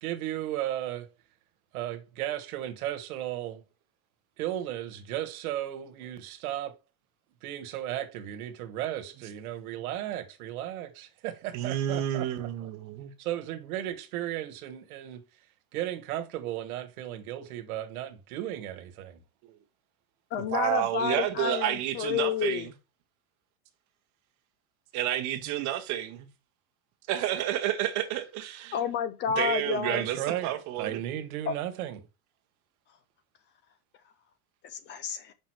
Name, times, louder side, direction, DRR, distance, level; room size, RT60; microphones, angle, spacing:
voice 1, 0.0-1.1 1.7-3.6 4.4-6.7 7.4-12.5 13.2-15.2 15.7-19.2 29.9-30.5 30.8-32.0, right 12 dB, 85° right, 1.5 m, -35 dB
voice 2, 11.5-13.1 19.4-19.6 20.4-22.7 24.9-26.3 27.1-28.8 29.4-31.0, right 12 dB, 40° right, 1.2 m, -30 dB
voice 3, 20.3-22.7 28.7-30.0 31.5-31.6 34.6-35.3, left 8 dB, 25° left, 0.4 m, -30 dB
6.0 x 5.3 x 4.6 m
supercardioid pair, 160°, 42 cm